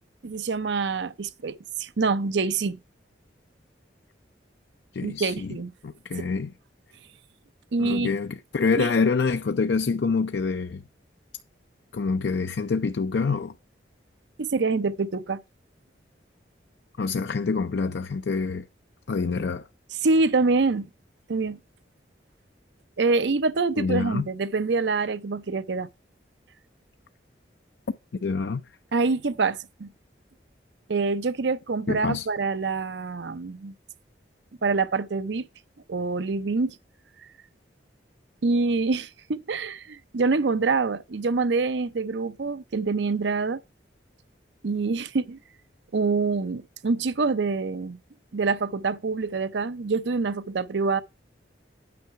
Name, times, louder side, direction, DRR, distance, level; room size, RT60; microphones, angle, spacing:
voice 1, 0.2-2.8 5.0-5.7 6.2-6.3 7.7-8.1 8.8-8.9 14.4-15.4 20.0-20.9 21.3-21.6 23.0-25.9 28.9-29.9 30.9-33.7 34.6-35.5 35.9-36.8 38.4-43.6 44.6-45.4 45.9-48.0 48.3-51.0, right 4 dB, 70° right, 0.6 m, -26 dB
voice 2, 4.9-5.5 5.8-6.5 7.8-10.8 11.9-13.5 17.0-18.6 19.1-19.7 23.8-24.3 28.2-28.6 31.9-32.3, left 4 dB, 65° left, 0.5 m, -26 dB
9.4 x 5.5 x 4.6 m
head